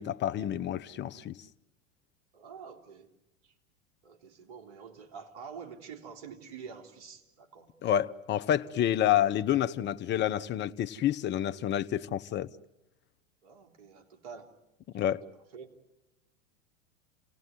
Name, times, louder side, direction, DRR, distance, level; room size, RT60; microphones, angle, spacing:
voice 1, 0.0-1.4 7.8-12.5 14.9-15.2, left 11 dB, 30° left, 0.9 m, -28 dB
voice 2, 2.3-3.1 3.4-3.5 4.0-7.7 13.4-14.5 15.5-15.7, right 6 dB, 55° right, 3.6 m, -47 dB
29.0 x 18.0 x 9.5 m
hypercardioid pair, 95°, 39 cm